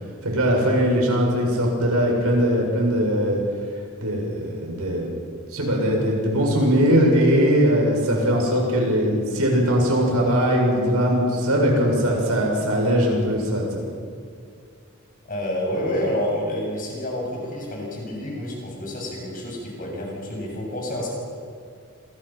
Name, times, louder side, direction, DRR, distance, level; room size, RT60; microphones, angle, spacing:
voice 1, 0.2-3.4 4.0-5.1 5.5-13.8, equal, 85° right, 0 dB, 6.8 m, -20 dB
voice 2, 15.3-21.1, left 1 dB, 40° left, -2 dB, 7.5 m, -28 dB
27.5 x 21.5 x 5.9 m, 2.2 s
head